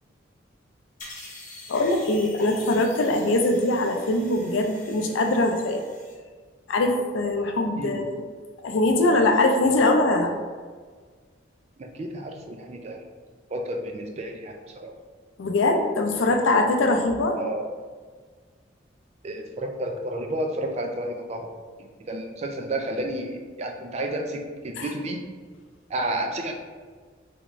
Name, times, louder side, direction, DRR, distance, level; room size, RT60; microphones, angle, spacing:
sound 1, 1.0-6.1, left 2 dB, 45° left, 1.0 m, -45 dB
voice 1, 1.7-5.8 6.7-8.1 8.6-10.3 15.4-17.4 24.8-24.9, left 2 dB, 90° left, 4 dB, 0.4 m, -22 dB
voice 2, 11.8-13.0 13.5-14.9 17.3-17.7 19.2-21.5 22.1-25.3 25.9-26.5, right 1 dB, 35° right, 3 dB, 0.4 m, -31 dB
3.4 x 2.5 x 3.0 m, 1.5 s
head